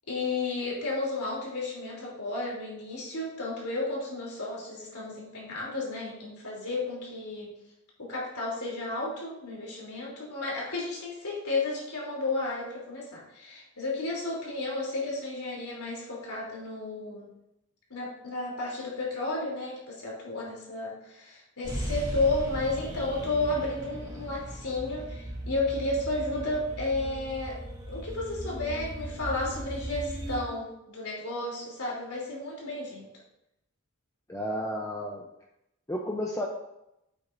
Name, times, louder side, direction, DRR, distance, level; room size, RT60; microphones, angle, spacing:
voice 1, 0.1-7.5 8.0-17.3 17.9-27.6 27.9-33.1, left 2 dB, 85° left, -3 dB, 3.4 m, -32 dB
sound 1, 21.6-30.4, right 1 dB, 20° right, 2.5 m, -37 dB
voice 2, 34.3-35.2 35.9-36.5, equal, 15° left, -1 dB, 0.7 m, -32 dB
9.6 x 8.2 x 2.7 m, 0.85 s
head